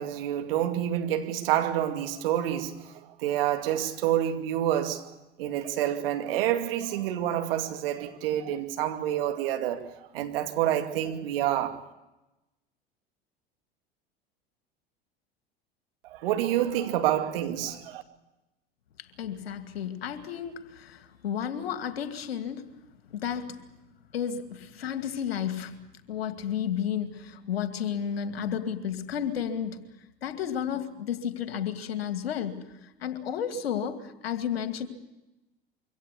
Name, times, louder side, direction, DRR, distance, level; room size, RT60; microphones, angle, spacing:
voice 1, 0.0-5.1 5.4-11.8 16.0-18.0, right 11 dB, 70° right, 2.5 m, -28 dB
voice 2, 19.0-22.7 23.1-23.6 24.1-25.8 26.1-29.8 30.2-34.9, left 8 dB, 80° left, 2.4 m, -32 dB
24.5 x 17.0 x 8.4 m
hypercardioid pair, 80°, 30 cm